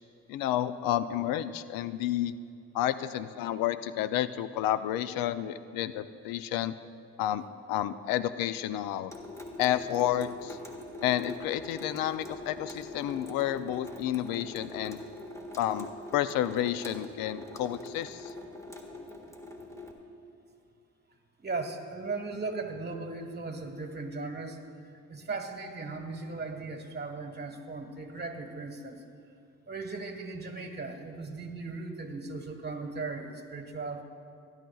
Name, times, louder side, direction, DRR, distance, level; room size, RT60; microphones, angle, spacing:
voice 1, 0.3-2.3 2.7-6.7 7.2-9.1 9.6-10.6 11.0-15.0 15.6-18.3, left 12 dB, 85° left, 13 dB, 0.5 m, -30 dB
Water tap faucet / Sink (filling or washing) / Drip, 9.1-19.9, left 2 dB, 10° left, 1.6 m, -43 dB
voice 2, 21.4-24.6 25.1-29.0 29.7-34.0, right 3 dB, 30° right, 5 dB, 1.4 m, -37 dB
19.0 x 10.5 x 2.3 m, 2.4 s
supercardioid pair, 75°, 33 cm